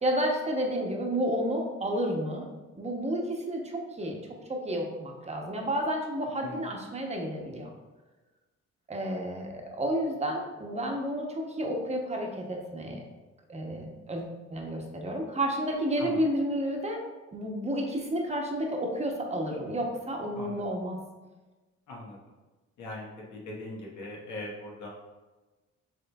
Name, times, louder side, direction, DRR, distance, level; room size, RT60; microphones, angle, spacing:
voice 1, 0.0-2.5 2.8-4.2 4.5-7.7 8.9-13.0 13.5-17.0 17.3-21.0, equal, 25° right, 1 dB, 0.8 m, -31 dB
voice 2, 21.9-22.2 22.8-24.9, left 2 dB, 90° left, -3 dB, 1.3 m, -40 dB
7.3 x 3.1 x 2.3 m, 1.2 s
cardioid pair, 130°, 29 cm